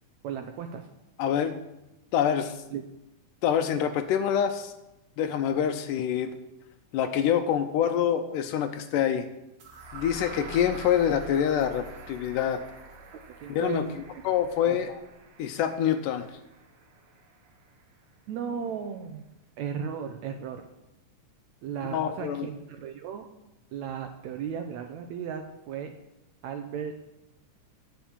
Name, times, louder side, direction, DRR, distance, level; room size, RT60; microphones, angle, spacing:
voice 1, 0.2-0.9 2.7-2.8 13.4-14.0 14.6-14.8 18.3-19.3 19.6-20.7 21.6-23.3 23.7-25.9 26.4-26.9, right 7 dB, 75° right, 5 dB, 1.9 m, -35 dB
voice 2, 1.2-1.6 2.1-2.6 3.4-4.7 5.2-6.4 6.9-9.3 9.9-12.6 13.5-13.9 14.2-15.0 15.4-16.3 21.9-22.5, left 9 dB, 85° left, 7 dB, 2.2 m, -26 dB
sound 1, 9.6-17.5, right 1 dB, 55° right, 1.8 m, -45 dB
9.9 x 6.0 x 7.3 m, 0.93 s
omnidirectional pair, 3.6 m